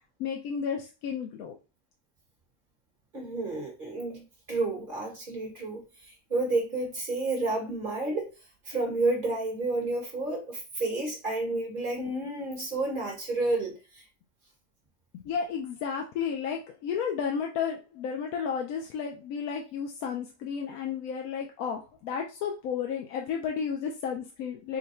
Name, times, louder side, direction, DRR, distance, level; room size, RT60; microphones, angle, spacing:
voice 1, 0.2-1.6 15.1-24.8, left 7 dB, 75° left, 2 dB, 1.0 m, -32 dB
voice 2, 3.1-8.3 8.6-14.0, right 2 dB, 35° right, 0 dB, 1.3 m, -30 dB
3.9 x 2.2 x 4.2 m, 0.30 s
omnidirectional pair, 1.6 m